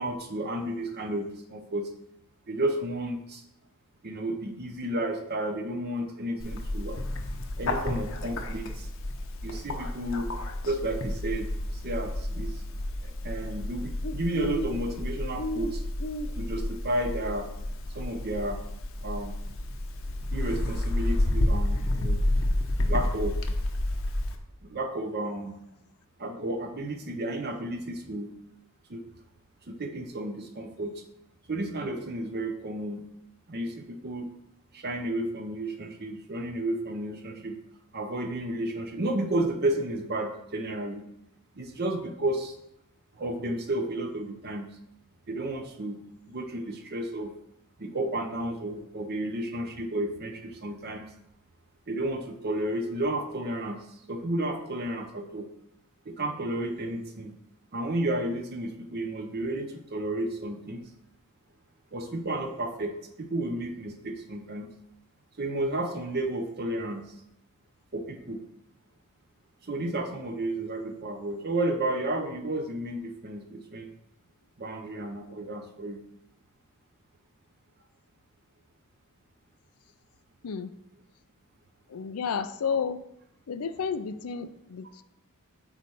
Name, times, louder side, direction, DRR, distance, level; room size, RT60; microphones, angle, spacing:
voice 1, 0.0-1.9 2.5-3.4 4.0-7.0 7.6-8.9 9.4-10.3 10.6-12.6 13.0-15.8 16.4-17.5 17.9-18.6 19.0-19.3 20.3-22.2 22.8-23.4 24.6-25.6 26.2-28.3 28.9-29.0 29.7-31.0 31.5-33.1 33.5-34.3 34.7-37.6 37.9-41.1 41.6-42.6 43.2-44.7 45.3-46.0 46.3-47.3 47.8-51.1 51.9-55.5 56.1-57.3 57.7-60.8 61.9-64.7 65.4-67.0 67.9-68.4 69.6-73.9 74.6-76.0, right 1 dB, 45° right, 4 dB, 0.7 m, -32 dB
Bird, 6.4-24.4, left 1 dB, 65° left, 0.8 m, -30 dB
voice 2, 81.9-83.0 83.5-85.0, left 6 dB, 85° left, 13 dB, 0.5 m, -31 dB
8.1 x 3.2 x 5.4 m, 0.81 s
head